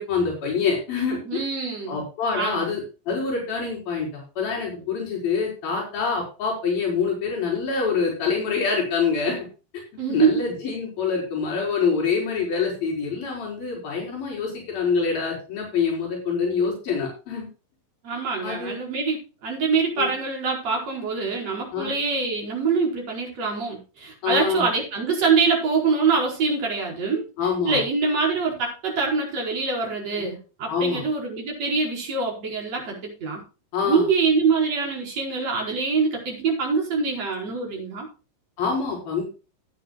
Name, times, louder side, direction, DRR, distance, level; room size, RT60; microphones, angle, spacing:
voice 1, 0.0-1.4 1.9-9.5 9.7-9.8 10.1-17.5 18.4-18.8 20.0-20.1 21.7-21.9 24.2-24.7 27.4-27.8 30.2-30.3 30.7-31.0 33.7-34.1 38.6-39.2, left 5 dB, 80° left, -2 dB, 6.3 m, -26 dB
voice 2, 1.2-2.0 2.4-2.7 10.0-10.4 18.0-27.2 27.6-33.4 33.8-38.1, right 4 dB, 45° right, 0 dB, 5.9 m, -24 dB
18.0 x 9.4 x 2.4 m, 0.32 s
omnidirectional pair, 4.1 m